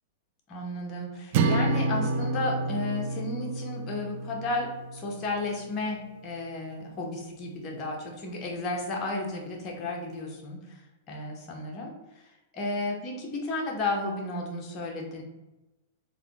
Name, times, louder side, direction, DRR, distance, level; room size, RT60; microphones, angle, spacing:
voice 1, 0.5-10.8 11.1-11.9 12.5-15.2, left 2 dB, 30° left, -1 dB, 0.9 m, -33 dB
sound 1, 1.3-5.7, right 3 dB, 50° right, 0.3 m, -29 dB
3.6 x 2.2 x 3.5 m, 1.0 s
hypercardioid pair, 130°, 0 cm